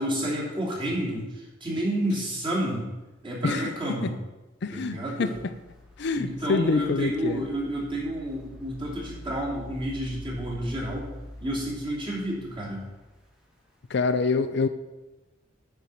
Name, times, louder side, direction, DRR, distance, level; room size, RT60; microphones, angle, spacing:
voice 1, 0.0-2.9 3.2-4.2 4.7-5.3 6.1-11.1 11.4-12.8, right 1 dB, 25° right, -4 dB, 2.7 m, -30 dB
voice 2, 4.6-5.3 6.0-7.4 13.9-14.7, left 4 dB, 60° left, 10 dB, 0.5 m, -26 dB
sound 1, 5.3-13.6 14.0-14.1, left 1 dB, 5° right, 1.4 m, -45 dB
9.6 x 4.7 x 6.9 m, 1.1 s
head